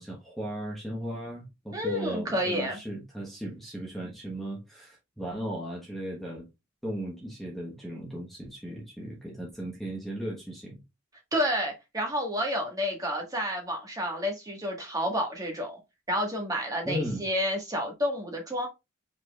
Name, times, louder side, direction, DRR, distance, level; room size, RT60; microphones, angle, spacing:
voice 1, 0.0-6.5 6.8-10.8 16.8-17.3, right 1 dB, ahead, 1.1 m, -36 dB
voice 2, 1.7-2.8 11.3-15.8 16.1-18.7, equal, 20° right, 1.5 m, -30 dB
5.2 x 4.2 x 2.4 m
head